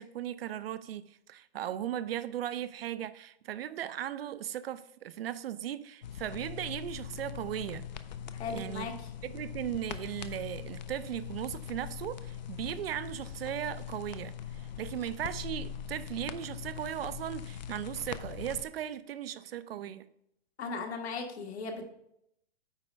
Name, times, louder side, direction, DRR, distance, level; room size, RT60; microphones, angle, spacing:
voice 1, 0.0-7.9 8.5-8.9 9.2-20.0, right 11 dB, 65° right, 0.5 m, -37 dB
sound 1, 6.0-18.6, left 9 dB, 45° left, 0.4 m, -42 dB
voice 2, 8.3-8.9 20.6-21.8, left 4 dB, 75° left, 1.6 m, -37 dB
8.9 x 3.3 x 5.2 m
hypercardioid pair, 175°, 33 cm